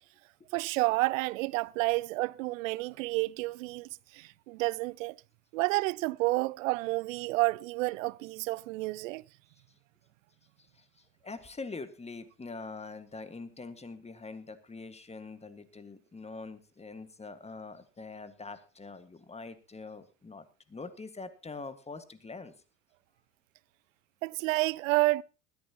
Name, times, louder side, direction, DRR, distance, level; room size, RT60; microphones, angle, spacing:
voice 1, 0.5-5.2 5.5-9.2 24.2-25.2, right 21 dB, 70° right, 0.6 m, -30 dB
voice 2, 10.6-22.5, left 3 dB, 15° left, 1.7 m, -44 dB
20.0 x 14.0 x 3.0 m
hypercardioid pair, 70°, 40 cm